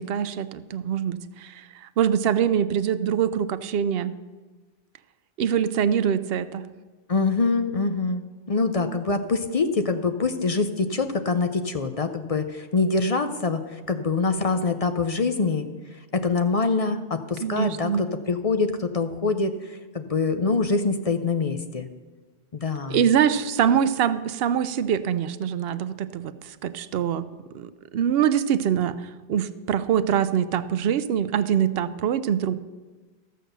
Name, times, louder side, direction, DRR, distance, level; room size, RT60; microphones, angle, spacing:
voice 1, 0.0-4.1 5.4-6.6 17.4-18.1 22.9-27.3 27.5-32.5, right 8 dB, 60° right, 13 dB, 0.7 m, -24 dB
voice 2, 7.1-15.7 16.1-21.9 22.5-23.0, left 4 dB, 40° left, 8 dB, 0.5 m, -25 dB
14.0 x 6.6 x 6.6 m, 1.3 s
omnidirectional pair, 1.2 m